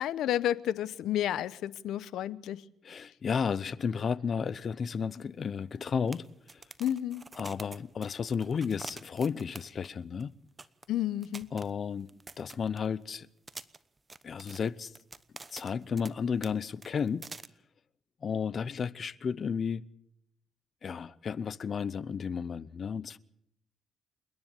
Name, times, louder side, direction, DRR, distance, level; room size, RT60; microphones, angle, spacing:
voice 1, 0.0-2.6 6.8-7.2 10.9-11.5, left 12 dB, 80° left, 0.8 m, -31 dB
voice 2, 2.8-6.2 6.5-6.6 7.4-10.3 11.5-12.1 12.4-13.3 14.2-14.9 15.5-17.3 18.2-19.8 20.8-23.2, left 6 dB, 50° left, 0.7 m, -33 dB
sound 1, 5.1-5.2 5.4-5.5 6.1-9.9 10.2-10.3 10.6-10.9 11.2-13.0 13.5-16.1 16.4-16.5 16.8-17.5, right 3 dB, 25° right, 1.0 m, -46 dB
28.5 x 10.5 x 9.1 m
cardioid pair, 90°, 0 cm